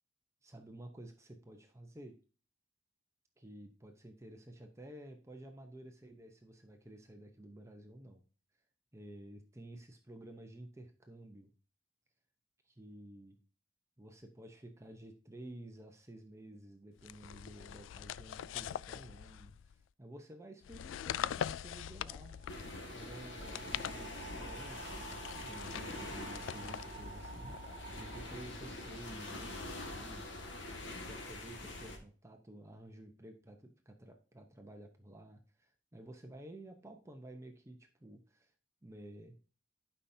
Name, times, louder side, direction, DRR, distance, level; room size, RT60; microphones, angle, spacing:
voice 1, 0.4-2.2 3.4-8.2 8.9-11.5 12.6-13.4 14.0-22.3 22.9-30.4 30.8-38.5 38.8-39.4, right 1 dB, 15° right, 4 dB, 0.9 m, -52 dB
sound 1, 17.0-19.8 20.6-22.8 23.4-24.5 25.1-27.9, left 9 dB, 90° left, 0.3 m, -43 dB
sound 2, 21.6-28.9, right 4 dB, 35° right, 1.8 m, -52 dB
sound 3, 22.5-32.0, left 2 dB, 70° left, 1.9 m, -45 dB
12.0 x 5.7 x 2.8 m, 0.38 s
head